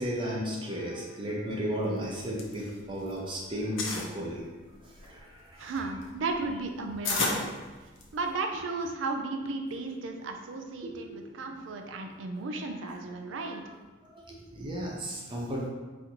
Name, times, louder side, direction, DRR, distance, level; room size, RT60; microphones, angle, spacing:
voice 1, 0.0-4.4 4.8-5.6 10.8-11.2 11.5-11.7 12.8-12.9 13.5-13.6 14.0-15.7, equal, 25° right, -3 dB, 0.5 m, -34 dB
sound 1, 2.0-3.2 3.5-4.1 4.7-8.3, left 3 dB, 85° left, 0.6 m, -33 dB
voice 2, 5.6-7.5 8.1-13.6, right 3 dB, 80° right, 4 dB, 0.4 m, -34 dB
4.1 x 2.5 x 2.9 m, 1.3 s
head